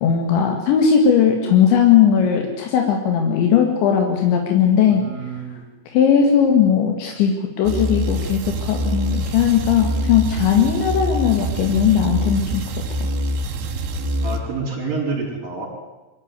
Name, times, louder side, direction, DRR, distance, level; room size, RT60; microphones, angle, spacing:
voice 1, 0.0-5.0 5.9-12.6, left 8 dB, 80° left, 3 dB, 4.1 m, -18 dB
voice 2, 4.9-5.6 14.2-15.7, right 4 dB, 50° right, -4 dB, 6.4 m, -28 dB
sound 1, 7.7-14.4, equal, 90° right, 4.3 m, -25 dB
23.5 x 14.5 x 9.4 m, 1.1 s
omnidirectional pair, 5.2 m